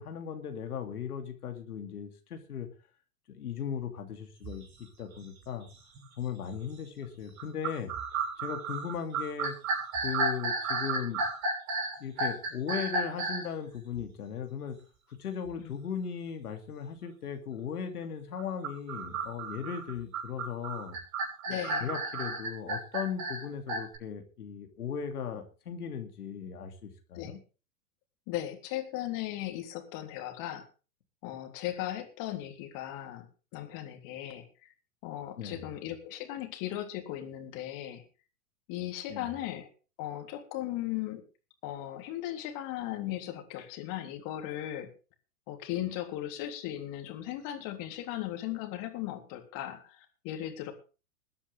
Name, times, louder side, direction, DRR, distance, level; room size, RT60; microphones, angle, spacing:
voice 1, 0.0-2.7 3.3-5.7 6.2-7.9 8.4-9.5 10.0-11.2 12.0-14.8 15.2-21.0 21.5-27.4 35.4-35.6 39.1-39.3, left 7 dB, 80° left, 5 dB, 2.9 m, -37 dB
sound 1, 4.4-4.6 5.2-5.3 5.9-6.3 7.4-13.5 18.4-24.0, right 3 dB, 40° right, 6.4 m, -33 dB
voice 2, 21.5-21.9 27.1-27.4 28.3-30.6 31.2-33.3 33.5-34.7 35.0-38.0 38.7-39.7 40.0-41.2 41.6-44.9 45.5-50.7, left 13 dB, 45° left, 5 dB, 3.5 m, -37 dB
21.5 x 9.9 x 3.6 m, 0.34 s
hypercardioid pair, 110°, 44 cm